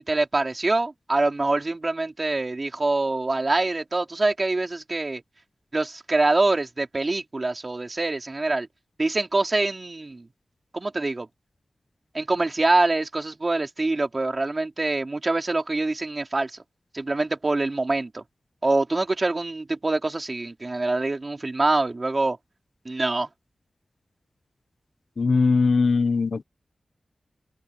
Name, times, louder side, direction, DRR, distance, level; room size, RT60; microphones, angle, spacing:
voice 1, 0.0-5.2 5.7-8.7 9.0-10.3 10.7-11.3 12.1-16.6 16.9-18.2 18.6-22.4 22.9-23.3, right 2 dB, 40° right, 4.1 m, -25 dB
voice 2, 25.2-26.4, left 4 dB, 65° left, 1.1 m, -20 dB
cardioid pair, 55°, 0 cm